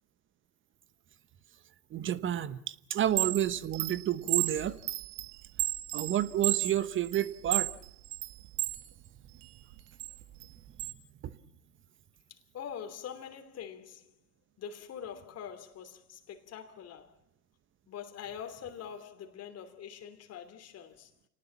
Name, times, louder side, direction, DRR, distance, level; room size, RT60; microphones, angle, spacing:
voice 1, 1.9-4.8 5.9-7.7, right 11 dB, 25° right, 1.0 m, -30 dB
Chime, 3.0-8.8 9.3-10.9, right 18 dB, 40° right, 1.5 m, -33 dB
voice 2, 12.3-14.1 14.6-17.1 17.9-21.1, left 8 dB, 30° left, 3.0 m, -44 dB
28.5 x 19.0 x 7.3 m
hypercardioid pair, 100°, 48 cm